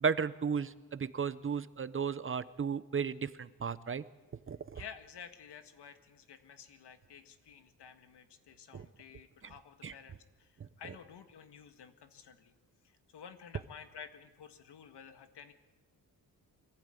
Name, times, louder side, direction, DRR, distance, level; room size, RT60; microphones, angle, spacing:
voice 1, 0.0-4.0 4.5-4.8 8.7-8.9 9.4-9.5 9.8-9.9, right 6 dB, 35° right, 15 dB, 0.6 m, -34 dB
voice 2, 4.7-10.5 10.8-12.5 13.1-15.5, left 7 dB, 85° left, 8 dB, 1.8 m, -52 dB
24.0 x 15.5 x 9.0 m, 1.2 s
wide cardioid pair, 160°, 39 cm